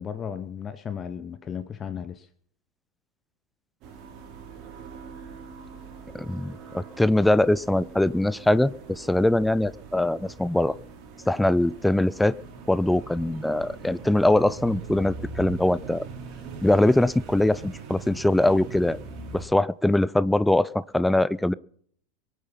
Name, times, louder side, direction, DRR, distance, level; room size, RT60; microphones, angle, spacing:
voice 1, 0.0-2.3, left 7 dB, 25° left, 12 dB, 0.9 m, -35 dB
sound 1, 3.8-19.4, right 5 dB, 40° right, 3.4 m, -42 dB
voice 2, 6.1-10.7 11.3-12.3 12.7-16.1 16.6-19.0 19.3-21.5, left 1 dB, 5° left, 19 dB, 0.5 m, -22 dB
23.5 x 8.3 x 5.6 m, 0.63 s
figure-of-eight pair, 85°, 0 cm